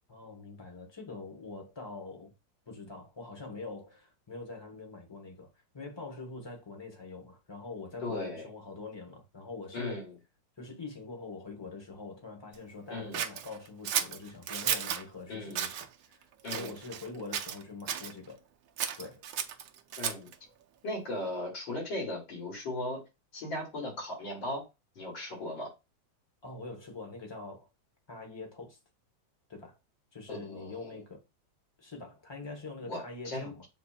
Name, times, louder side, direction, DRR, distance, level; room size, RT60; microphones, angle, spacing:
voice 1, 0.1-2.3 2.7-10.1 10.6-18.4 19.0-19.2 26.4-27.7 28.1-28.8 29.5-29.8 30.1-31.2 31.8-33.7, left 3 dB, 20° left, 0.7 m, -44 dB
voice 2, 8.0-8.4 9.7-10.1 12.9-13.2 15.3-15.6 16.4-16.7 20.0-20.3 20.8-23.0 23.3-24.6 25.0-25.7 30.3-31.0 32.9-33.5, left 1 dB, 80° left, 3.0 m, -37 dB
Scissors, 13.1-15.0 15.5-15.9 16.5-17.1 17.3-18.1 18.8-20.3, right 9 dB, 80° right, 0.7 m, -33 dB
7.6 x 2.9 x 2.3 m
omnidirectional pair, 2.0 m